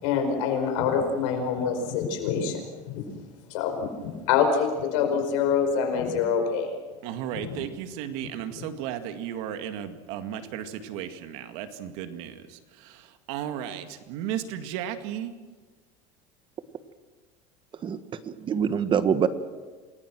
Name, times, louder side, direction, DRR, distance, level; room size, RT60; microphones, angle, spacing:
voice 1, 0.0-2.6 2.9-3.1 3.5-6.7 7.3-7.6, left 6 dB, 80° left, 4 dB, 5.1 m, -26 dB
voice 2, 7.0-15.3, right 10 dB, 70° right, 8 dB, 2.1 m, -35 dB
voice 3, 17.8-19.3, right 7 dB, 30° right, 12 dB, 1.3 m, -25 dB
28.0 x 20.0 x 6.2 m, 1.4 s
supercardioid pair, 130°, 16 cm